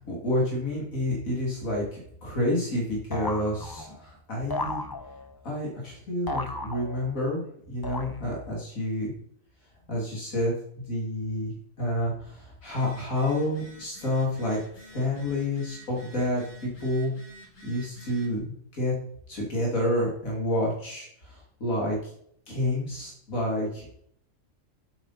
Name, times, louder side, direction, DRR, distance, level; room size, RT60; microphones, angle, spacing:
voice 1, 0.0-4.8 5.4-7.4 7.7-9.1 9.9-11.5 11.8-14.6 14.9-16.4 16.8-17.1 17.6-18.9 19.3-22.1 22.5-23.9, left 1 dB, 85° left, -3 dB, 3.4 m, -29 dB
sound 1, 3.1-4.1 4.5-5.4 6.3-7.3 7.8-8.5, left 2 dB, 25° left, 0.6 m, -35 dB
Telephone, 12.7-18.3, right 1 dB, 70° left, 3.4 m, -50 dB
11.5 x 8.2 x 4.3 m, 0.67 s
omnidirectional pair, 1.4 m